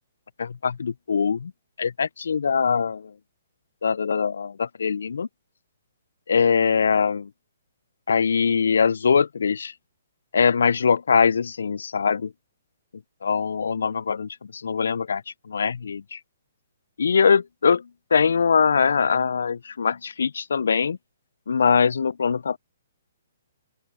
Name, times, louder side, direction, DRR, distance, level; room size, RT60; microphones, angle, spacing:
voice 1, 0.4-1.5 1.8-3.1 3.8-5.3 6.3-7.3 8.1-9.7 10.3-12.3 13.2-16.2 17.0-21.0 21.5-22.6, left 6 dB, 70° left, 0.6 m, -22 dB
open air
figure-of-eight pair, 125°, 0 cm